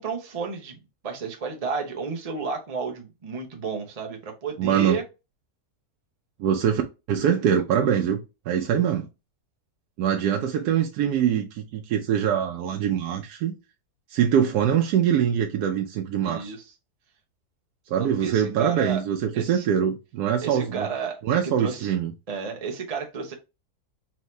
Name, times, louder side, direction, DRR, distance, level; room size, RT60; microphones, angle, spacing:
voice 1, 0.0-5.0 16.2-16.7 18.0-19.0 19.3-19.7 20.4-21.9 22.3-23.3, right 5 dB, 30° right, 0.8 m, -32 dB
voice 2, 4.6-5.0 6.4-6.8 7.1-8.2 8.5-9.1 10.0-13.6 14.1-16.5 17.9-20.9 21.2-22.1, right 9 dB, 85° right, 1.2 m, -23 dB
4.4 x 2.8 x 3.1 m
omnidirectional pair, 1.6 m